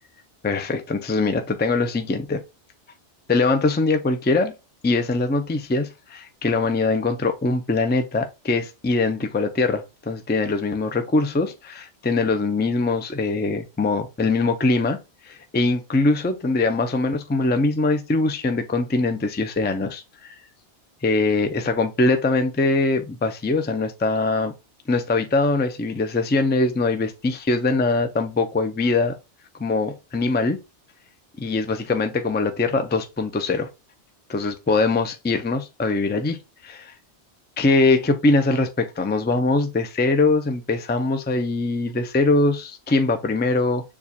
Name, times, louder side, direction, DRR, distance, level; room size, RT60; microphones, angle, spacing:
voice 1, 0.4-2.4 3.3-4.5 4.8-5.9 6.1-15.0 15.3-20.3 21.0-24.5 24.9-29.2 29.6-30.6 31.4-33.7 34.3-36.4 36.6-36.9 37.6-43.8, left 3 dB, 15° left, 0.3 m, -22 dB
6.9 x 2.4 x 2.8 m
omnidirectional pair, 1.2 m